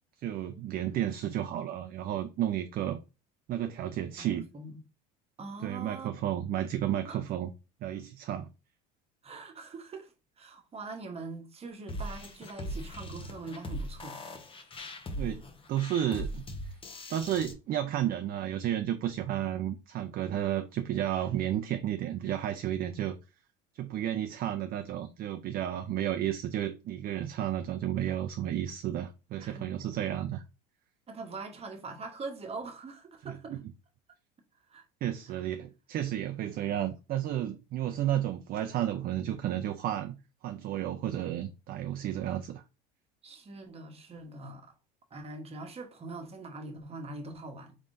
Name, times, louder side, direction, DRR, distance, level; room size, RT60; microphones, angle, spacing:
voice 1, 0.2-3.0 3.5-4.5 5.6-7.5 7.8-8.5 15.2-15.4 15.7-16.8 17.1-23.1 23.7-30.4 33.2-33.6 35.0-40.2 40.4-42.6, right 11 dB, 45° right, 0.4 m, -32 dB
voice 2, 4.2-4.7 5.4-6.1 7.0-7.2 9.2-14.2 29.4-29.8 31.1-33.5 34.7-34.8 43.2-44.7 45.1-47.8, right 3 dB, 30° right, 1.0 m, -43 dB
sound 1, 11.9-17.5, equal, 25° left, 0.9 m, -39 dB
3.9 x 3.6 x 2.5 m
supercardioid pair, 90°, 21 cm